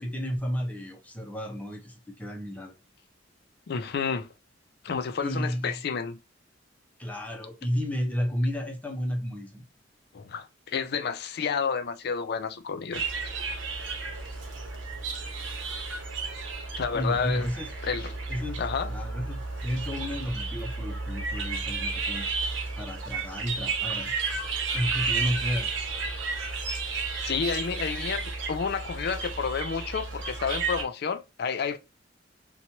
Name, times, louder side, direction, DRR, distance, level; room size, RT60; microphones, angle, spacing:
voice 1, 0.0-2.7 5.2-5.8 7.0-9.6 16.9-17.7 18.3-18.6 18.9-22.3 22.8-24.2 24.7-25.7, equal, 10° left, 0.6 m, -32 dB
voice 2, 3.7-4.3 4.8-6.2 10.1-13.0 16.8-17.5 17.8-18.1 18.6-18.9 27.2-31.8, left 6 dB, 55° left, 0.4 m, -30 dB
sound 1, 12.9-30.8, right 4 dB, 75° right, 0.9 m, -32 dB
3.0 x 2.2 x 2.6 m
head